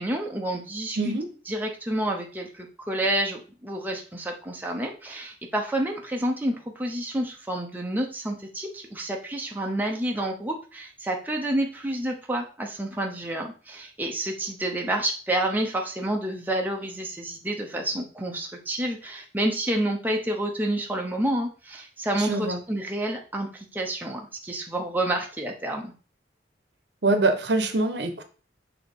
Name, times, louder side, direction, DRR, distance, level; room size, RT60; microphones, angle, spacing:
voice 1, 0.0-1.0 1.5-25.9, right 1 dB, 10° right, 1 dB, 0.7 m, -29 dB
voice 2, 1.0-1.3 22.2-22.6 27.0-28.2, right 2 dB, 65° right, 8 dB, 0.9 m, -24 dB
6.4 x 2.9 x 5.3 m, 0.37 s
head